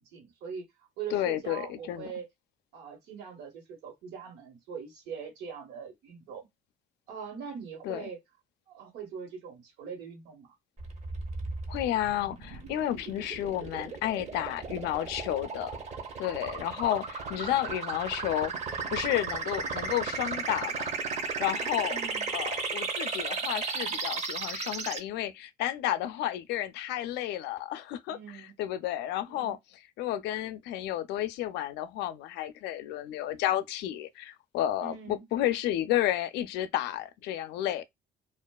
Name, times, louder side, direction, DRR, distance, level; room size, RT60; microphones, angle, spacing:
voice 1, 0.1-0.6 1.0-2.3 2.7-6.5 7.1-8.2 8.7-10.5 13.1-13.2 17.3-17.6 21.9-22.3 28.1-28.5 29.3-29.5 34.8-35.2, right 6 dB, 80° right, 1.2 m, -42 dB
voice 2, 1.1-2.1 7.8-8.1 11.7-15.7 16.2-20.9 21.4-22.0 22.3-29.6 30.0-37.8, left 12 dB, 85° left, 0.4 m, -31 dB
sound 1, 10.8-25.0, right 4 dB, 40° right, 0.7 m, -35 dB
2.4 x 2.2 x 2.2 m
cardioid pair, 110°, 17 cm